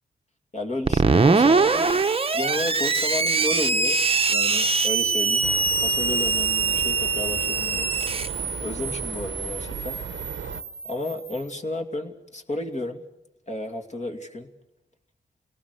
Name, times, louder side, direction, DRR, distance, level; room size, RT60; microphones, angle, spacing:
voice 1, 0.5-2.0 2.3-4.0 4.3-7.9 8.2-8.3 8.6-10.0 10.8-13.1 13.5-14.5, left 1 dB, 40° left, 3 dB, 2.5 m, -32 dB
Screech, 0.9-11.3, right 4 dB, 30° right, 0.8 m, -23 dB
sound 1, 2.5-9.7, left 6 dB, 80° left, 7.0 m, -53 dB
sound 2, 5.4-10.6, right 8 dB, 85° right, 0.8 m, -36 dB
29.0 x 18.5 x 6.7 m, 0.90 s
cardioid pair, 70°, 19 cm